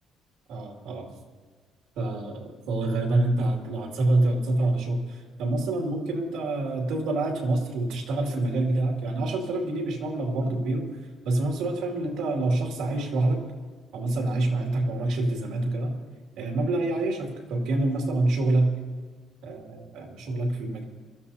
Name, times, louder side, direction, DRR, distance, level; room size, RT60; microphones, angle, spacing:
voice 1, 0.5-1.1 2.0-13.4 13.9-16.0 16.4-18.7 19.4-20.8, right 2 dB, 85° right, 1 dB, 2.5 m, -27 dB
24.5 x 14.0 x 2.8 m, 1.5 s
cardioid pair, 175°, 0 cm